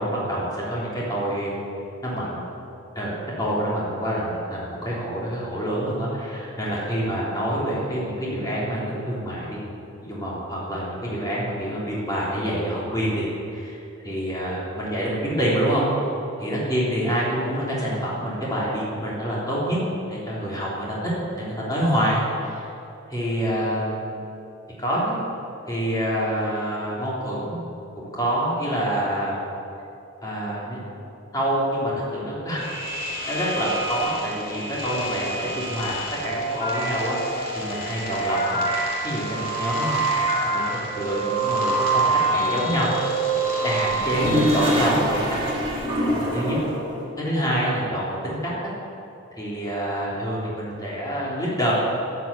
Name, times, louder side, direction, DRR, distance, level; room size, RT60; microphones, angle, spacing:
voice 1, 0.0-1.5 2.0-2.4 3.0-3.1 3.4-9.6 10.0-13.3 13.5-13.8 14.0-15.8 16.4-19.8 20.1-22.7 23.1-24.2 24.8-25.2 25.7-27.6 28.1-29.4 30.2-30.8 31.3-32.6 33.3-36.0 36.2-38.6 39.0-40.0 40.5-42.9 43.6-45.4 46.3-46.6 47.2-48.5 49.4-51.7, equal, 15° left, -7 dB, 3.5 m, -26 dB
sound 1, 32.6-44.8, right 2 dB, 45° left, 2.9 m, -26 dB
Toilet flush, 43.9-47.0, equal, 25° right, 2.6 m, -24 dB
12.5 x 9.2 x 8.4 m, 2.8 s
head